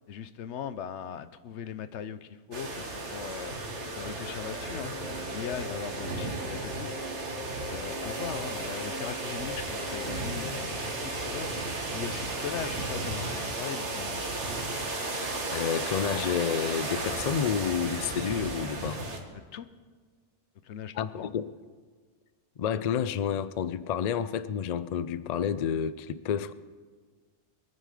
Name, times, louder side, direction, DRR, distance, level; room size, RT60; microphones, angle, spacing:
voice 1, 0.1-3.6 4.0-6.9 7.7-11.6 11.9-14.3 19.3-19.7 20.6-21.3, left 8 dB, 85° left, 1.0 m, -39 dB
sound 1, 2.5-19.2, right 2 dB, 80° right, 2.0 m, -34 dB
sound 2, 4.6-11.8, equal, 25° left, 3.0 m, -43 dB
voice 2, 15.5-19.0 20.9-21.5 22.6-26.5, left 8 dB, 50° left, 0.5 m, -30 dB
23.5 x 9.4 x 4.9 m
omnidirectional pair, 1.2 m